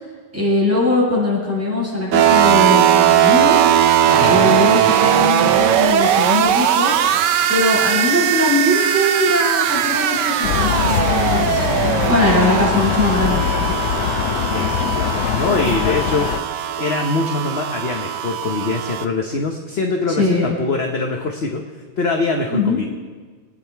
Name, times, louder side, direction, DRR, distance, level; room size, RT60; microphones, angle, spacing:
voice 1, 0.3-3.6 4.1-13.7 20.1-20.5 22.5-22.8, left 2 dB, 5° right, -7 dB, 6.0 m, -20 dB
sound 1, 2.1-19.1, right 10 dB, 70° right, 1.2 m, -18 dB
voice 2, 4.2-4.6 14.5-21.6 22.0-22.8, left 3 dB, 45° left, 3 dB, 1.0 m, -23 dB
sound 2, 10.4-16.4, left 11 dB, 75° left, 0.9 m, -22 dB
26.0 x 9.4 x 4.6 m, 1.5 s
omnidirectional pair, 2.1 m